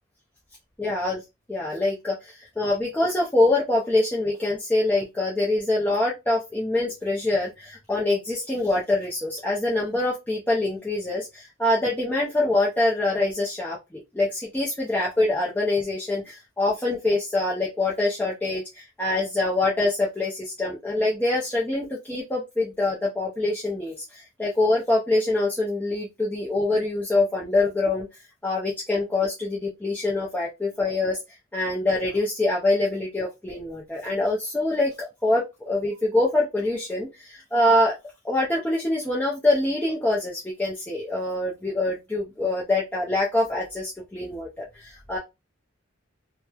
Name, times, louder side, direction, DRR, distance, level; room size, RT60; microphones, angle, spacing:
voice 1, 0.8-1.2 1.5-31.2 31.5-38.0 38.2-45.2, left 2 dB, 10° left, -4 dB, 0.4 m, -25 dB
2.9 x 2.0 x 2.2 m, 0.24 s
head